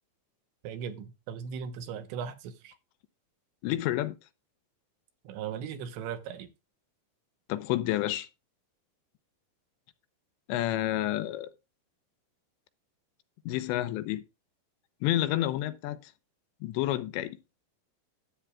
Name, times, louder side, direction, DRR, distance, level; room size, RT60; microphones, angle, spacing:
voice 1, 0.6-2.7 5.2-6.5, right 7 dB, 85° right, 3.4 m, -38 dB
voice 2, 3.6-4.2 7.5-8.3 10.5-11.5 13.5-14.2 15.0-16.1 16.6-17.4, left 14 dB, 85° left, 3.0 m, -29 dB
12.5 x 8.8 x 2.4 m
omnidirectional pair, 5.0 m